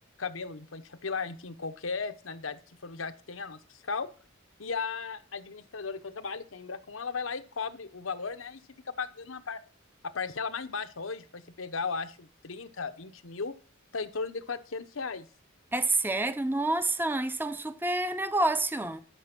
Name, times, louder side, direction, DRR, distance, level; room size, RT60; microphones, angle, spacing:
voice 1, 0.2-4.1 4.6-8.6 8.9-9.6 10.1-13.5 13.9-15.3, left 5 dB, 85° left, 1.0 m, -36 dB
voice 2, 15.7-19.0, right 2 dB, 10° right, 0.7 m, -28 dB
12.5 x 6.3 x 6.1 m
head